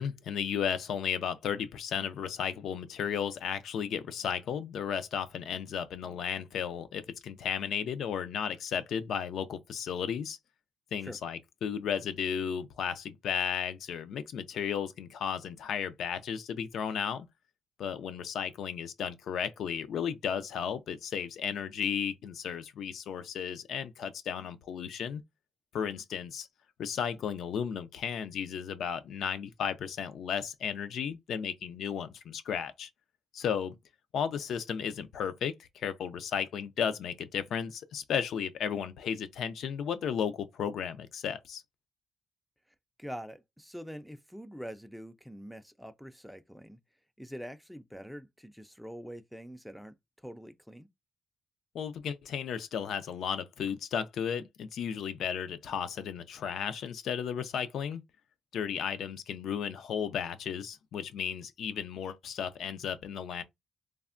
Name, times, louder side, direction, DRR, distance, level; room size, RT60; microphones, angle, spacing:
voice 1, 0.0-10.4 10.9-17.3 17.8-25.2 25.7-26.5 26.8-32.9 33.3-33.7 34.1-41.6 51.7-58.0 58.5-63.4, left 7 dB, 75° left, 0.4 m, -34 dB
voice 2, 43.0-46.8 47.2-50.0 50.2-50.9, equal, ahead, 0.3 m, -44 dB
3.3 x 2.1 x 2.4 m
cardioid pair, 115°, 0 cm